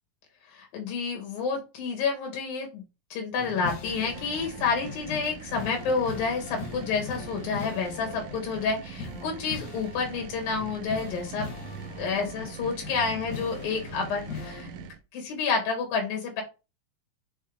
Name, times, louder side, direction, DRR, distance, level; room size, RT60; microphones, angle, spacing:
voice 1, 0.5-2.8 3.1-11.5 12.0-16.4, left 5 dB, 85° left, 0 dB, 3.8 m, -29 dB
sound 1, 3.4-14.6, left 4 dB, 60° left, 2.4 m, -40 dB
sound 2, 3.9-15.0, right 8 dB, 80° right, 2.5 m, -43 dB
8.2 x 4.0 x 3.5 m, 0.29 s
omnidirectional pair, 4.0 m